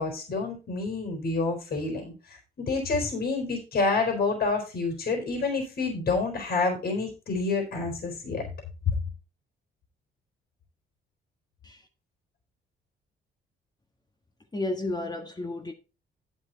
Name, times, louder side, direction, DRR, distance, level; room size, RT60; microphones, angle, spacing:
voice 1, 0.0-2.1 2.6-8.4, left 3 dB, 50° left, 4.4 m, -28 dB
voice 2, 14.5-15.7, left 2 dB, 20° left, 1.6 m, -32 dB
9.9 x 7.1 x 4.6 m
cardioid pair, 90°, 20 cm